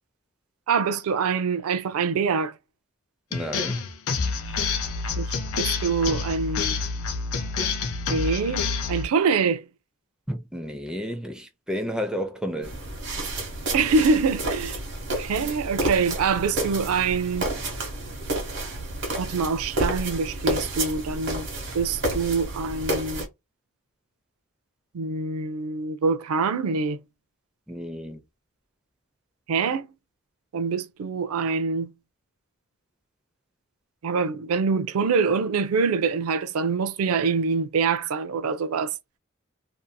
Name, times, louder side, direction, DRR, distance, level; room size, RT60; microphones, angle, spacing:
voice 1, 0.7-2.5 5.2-6.8 8.1-8.6 8.9-9.6 13.7-14.8 15.2-17.4 19.2-21.5 21.7-23.3 24.9-27.0 29.5-29.9 30.5-31.9 34.0-38.9, right 5 dB, 85° right, 0.4 m, -25 dB
sound 1, 3.3-9.1, left 4 dB, 85° left, 0.5 m, -28 dB
voice 2, 3.3-3.8 10.3-12.8 27.7-28.2, equal, 5° right, 0.4 m, -31 dB
sound 2, 12.6-23.3, right 1 dB, 55° right, 1.2 m, -30 dB
2.6 x 2.6 x 2.2 m
head